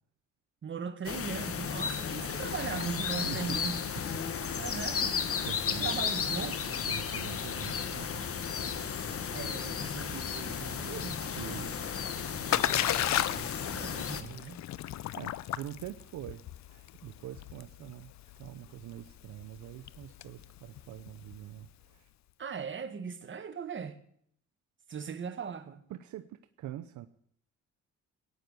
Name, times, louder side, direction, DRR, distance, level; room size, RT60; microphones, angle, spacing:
voice 1, 0.6-3.8 4.3-5.2 5.8-6.7 9.3-11.2 12.5-14.6 22.4-24.0 24.9-25.8, right 6 dB, 40° right, 1.7 m, -39 dB
sound 1, 1.0-14.2, left 7 dB, 50° left, 1.3 m, -34 dB
voice 2, 3.2-3.6 5.4-6.0 6.9-8.2 11.3-11.9 15.2-16.4 16.7-18.1 18.4-22.1 25.9-27.1, right 13 dB, 75° right, 0.8 m, -44 dB
Splash splatter, 11.9-21.7, left 13 dB, 65° left, 0.6 m, -35 dB
17.5 x 9.5 x 6.8 m
cardioid pair, 90°, 30 cm